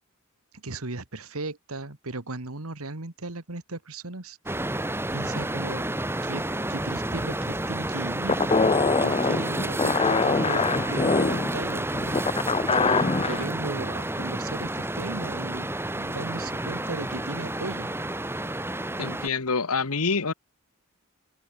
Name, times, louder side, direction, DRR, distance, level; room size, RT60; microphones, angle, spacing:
voice 1, 0.5-4.6 5.1-5.9 6.2-6.4 6.7-12.3 12.7-17.9, right 2 dB, 80° right, 2.1 m, -36 dB
sound 1, 4.5-19.3, right 1 dB, 10° right, 2.9 m, -30 dB
sound 2, 8.3-13.4, left 4 dB, 25° left, 0.6 m, -24 dB
voice 2, 19.0-20.3, left 4 dB, 85° left, 1.5 m, -26 dB
open air
head